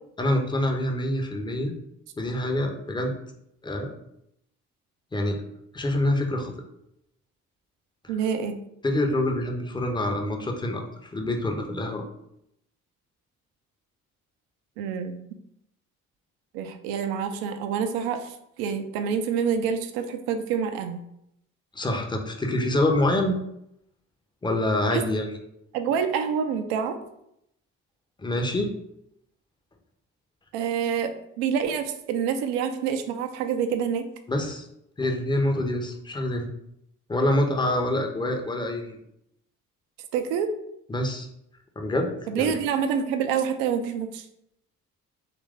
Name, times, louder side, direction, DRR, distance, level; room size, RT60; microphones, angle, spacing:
voice 1, 0.2-1.7 2.2-3.1 3.6-3.9 5.1-5.4 5.7-6.5 8.0-8.1 8.8-10.8 11.1-12.0 21.7-23.4 24.4-25.3 28.2-28.7 34.3-34.7 35.0-36.5 37.1-39.0 40.9-41.3 41.8-42.6, left 1 dB, 10° left, 2 dB, 0.6 m, -26 dB
voice 2, 8.1-8.6 14.8-15.2 16.5-21.0 24.9-25.0 25.7-27.0 30.5-34.1 40.1-40.5 42.3-44.3, right 7 dB, 65° right, 8 dB, 0.5 m, -27 dB
3.0 x 2.5 x 3.4 m, 0.76 s
figure-of-eight pair, 45°, 41 cm